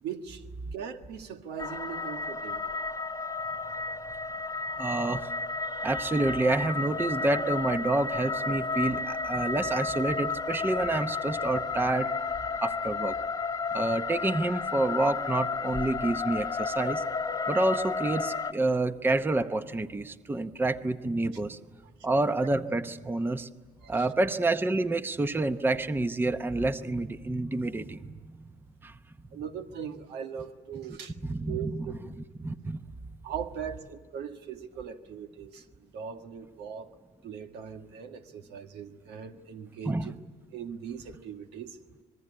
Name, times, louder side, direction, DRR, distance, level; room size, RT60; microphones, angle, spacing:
voice 1, 0.0-0.4 0.7-2.6 23.8-24.1 29.3-31.1 31.5-31.9 33.2-36.9 37.2-40.1 40.5-41.8, right 8 dB, 85° right, 6 dB, 1.8 m, -40 dB
sound 1, 1.6-18.5, left 4 dB, 20° left, 1.1 m, -32 dB
voice 2, 4.8-5.3 5.8-12.1 12.6-13.2 13.7-17.0 17.5-21.6 22.0-23.5 23.9-28.3 28.8-28.9 31.2-31.9 32.4-32.8 39.8-40.1, right 2 dB, 10° right, 11 dB, 0.8 m, -28 dB
26.0 x 21.0 x 9.9 m, 1.5 s
cardioid pair, 110°, 17 cm